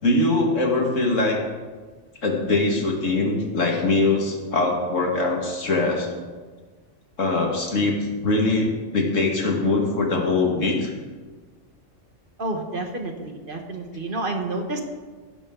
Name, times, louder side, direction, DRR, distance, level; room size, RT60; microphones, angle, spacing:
voice 1, 0.0-1.4 2.2-6.1 7.2-8.0 8.2-10.9, left 2 dB, 85° left, 1 dB, 2.4 m, -22 dB
voice 2, 12.4-14.8, right 2 dB, 45° right, 4 dB, 1.5 m, -29 dB
16.0 x 11.5 x 3.9 m, 1.4 s
omnidirectional pair, 1.3 m